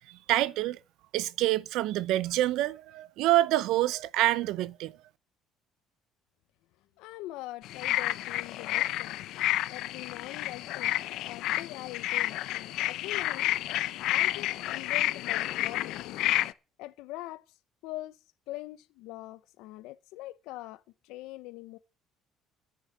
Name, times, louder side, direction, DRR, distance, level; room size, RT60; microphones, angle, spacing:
voice 1, 0.1-0.8 1.1-5.0, right 15 dB, 70° right, 0.7 m, -27 dB
voice 2, 7.0-13.5 14.1-16.0 16.8-17.4 17.8-18.2 18.5-21.8, left 17 dB, 90° left, 0.9 m, -43 dB
sound 1, 7.6-16.5, left 15 dB, 65° left, 0.7 m, -30 dB
10.5 x 9.6 x 7.4 m
cardioid pair, 170°, 0 cm